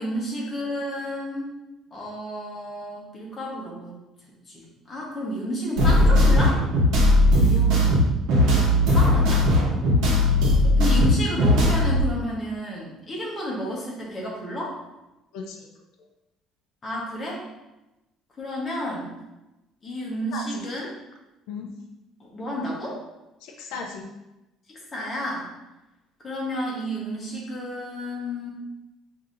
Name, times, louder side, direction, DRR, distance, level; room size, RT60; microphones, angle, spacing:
voice 1, 0.0-1.5 1.9-4.0 4.5-6.6 8.9-9.5 10.7-14.8 16.8-17.4 18.4-19.1 19.8-21.0 22.2-23.0 24.7-25.5 26.2-28.5, equal, 20° left, -4 dB, 1.1 m, -31 dB
sound 1, 5.8-12.0, left 1 dB, 70° right, 1.0 m, -18 dB
voice 2, 7.3-8.0 9.9-10.2 15.3-15.7 20.3-20.6 21.5-21.7 23.4-24.1, left 5 dB, 85° left, 2 dB, 0.4 m, -34 dB
5.3 x 2.7 x 2.6 m, 0.99 s
cardioid pair, 165°, 0 cm